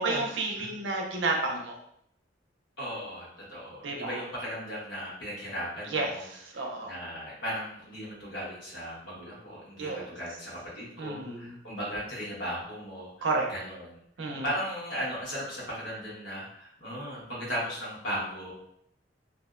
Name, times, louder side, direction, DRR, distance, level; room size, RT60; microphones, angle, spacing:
voice 1, 0.0-1.8 3.8-4.1 5.9-6.9 9.8-10.1 11.0-11.5 13.2-13.5 14.2-14.5, right 3 dB, 85° right, 1 dB, 0.5 m, -31 dB
voice 2, 2.8-6.3 6.5-14.0 14.4-18.5, equal, 90° left, -6 dB, 1.1 m, -37 dB
2.5 x 2.1 x 2.4 m, 0.72 s
head